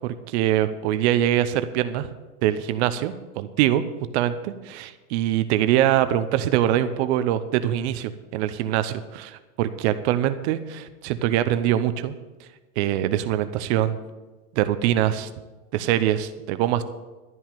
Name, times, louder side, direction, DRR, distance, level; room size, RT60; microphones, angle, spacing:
voice 1, 0.0-2.1 2.4-3.8 4.1-12.1 12.8-14.0 14.6-15.3 15.7-16.8, right 12 dB, 50° right, 12 dB, 0.8 m, -23 dB
12.5 x 5.7 x 9.2 m, 1.2 s
hypercardioid pair, 120°, 45 cm